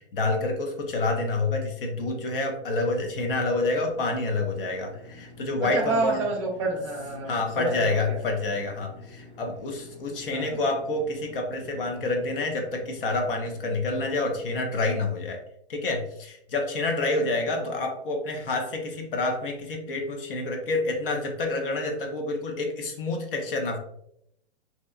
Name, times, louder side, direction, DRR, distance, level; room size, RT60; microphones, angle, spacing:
voice 1, 0.0-6.2 7.3-15.4 15.7-23.8, left 2 dB, 55° left, 3 dB, 0.6 m, -28 dB
sound 1, 2.9-14.6, left 2 dB, 20° left, 1.0 m, -48 dB
voice 2, 5.6-8.2 10.3-10.6 17.2-17.8, right 3 dB, 30° right, 0 dB, 0.6 m, -30 dB
2.8 x 2.2 x 2.3 m, 0.75 s
hypercardioid pair, 170°, 32 cm